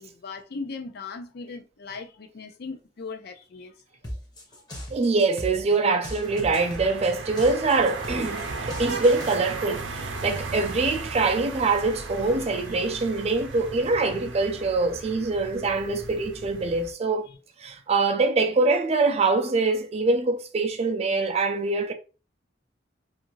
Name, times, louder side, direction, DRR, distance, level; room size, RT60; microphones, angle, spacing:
voice 1, 0.0-3.7 12.7-12.8 17.3-17.4, left 4 dB, 60° left, 0.5 m, -38 dB
sound 1, 4.0-9.4, equal, 20° left, 0.8 m, -38 dB
voice 2, 4.9-17.3 17.6-21.9, right 3 dB, 35° right, 0.4 m, -24 dB
sound 2, 6.2-16.9, right 3 dB, 80° right, 0.6 m, -36 dB
2.6 x 2.5 x 3.0 m
head